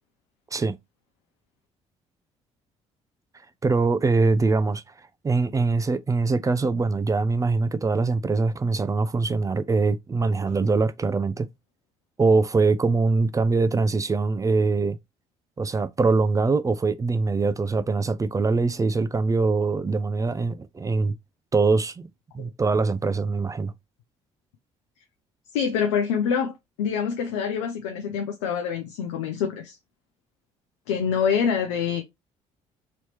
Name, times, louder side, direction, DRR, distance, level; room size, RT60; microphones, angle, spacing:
voice 1, 3.6-4.8 5.2-11.5 12.2-15.0 15.6-21.1 21.5-22.1 22.3-23.7, right 3 dB, 20° right, 0.4 m, -23 dB
voice 2, 25.5-29.8 30.9-32.0, left 7 dB, 85° left, 0.6 m, -26 dB
3.1 x 2.8 x 3.1 m
hypercardioid pair, 60°, 15 cm